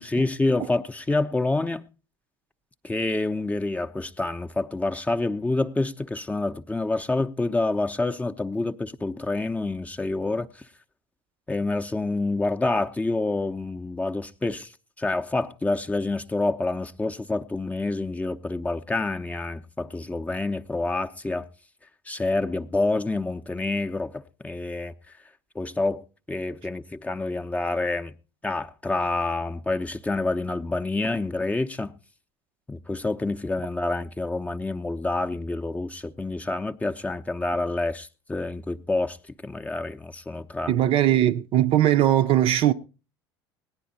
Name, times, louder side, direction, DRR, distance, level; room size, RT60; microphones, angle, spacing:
voice 1, 0.0-1.8 2.8-10.6 11.5-14.7 15.0-21.5 22.1-24.9 25.5-26.0 26.3-28.2 28.4-31.9 32.7-39.2 39.4-40.7, left 2 dB, 10° left, 0.6 m, -27 dB
voice 2, 40.7-42.7, right 12 dB, 45° right, 0.5 m, -20 dB
18.0 x 10.0 x 4.1 m
figure-of-eight pair, 70°, 13 cm